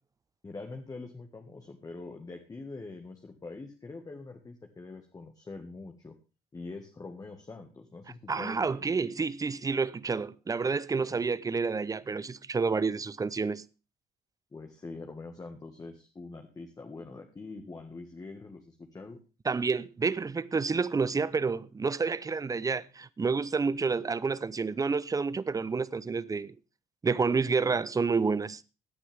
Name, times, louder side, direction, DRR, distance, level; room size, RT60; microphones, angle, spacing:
voice 1, 0.4-6.2 6.5-8.8 14.5-19.2, left 3 dB, 20° left, 1.7 m, -44 dB
voice 2, 8.3-13.6 19.5-26.5 27.0-28.6, right 4 dB, 20° right, 0.7 m, -29 dB
17.0 x 9.9 x 3.5 m
cardioid pair, 110°, 17 cm